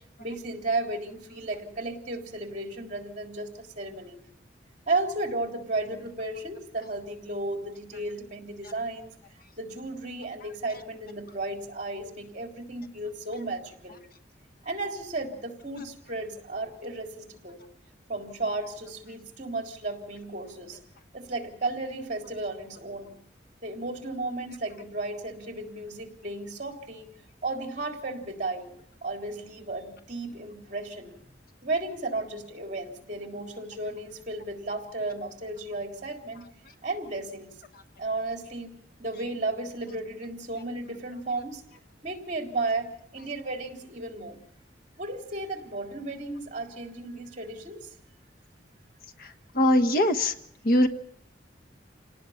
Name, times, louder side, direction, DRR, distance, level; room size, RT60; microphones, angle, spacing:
voice 1, 0.2-4.2 4.9-9.1 9.6-14.0 14.6-17.6 18.1-20.8 21.1-23.1 23.6-27.1 27.4-28.7 29.0-31.1 31.6-36.4 36.8-37.5 38.0-38.7 39.0-41.6 42.0-44.4 45.0-47.9, right 2 dB, 40° right, 2 dB, 3.6 m, -34 dB
voice 2, 49.2-50.3 50.6-50.9, left 1 dB, 50° left, 8 dB, 1.3 m, -22 dB
28.0 x 18.5 x 5.8 m, 0.70 s
head